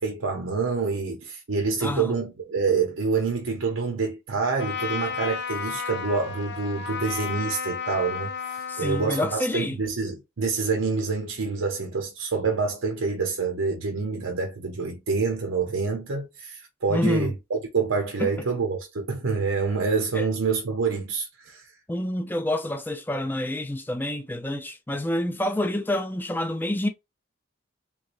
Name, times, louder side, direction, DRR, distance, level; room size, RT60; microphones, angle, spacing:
voice 1, 0.0-21.7, right 4 dB, 80° right, 0.7 m, -27 dB
voice 2, 1.8-2.1 8.7-9.8 16.9-17.3 18.2-18.3 20.1-20.3 21.9-26.9, left 1 dB, 10° left, 0.4 m, -28 dB
Trumpet, 4.6-9.5, left 6 dB, 55° left, 0.8 m, -33 dB
3.6 x 3.1 x 2.5 m
head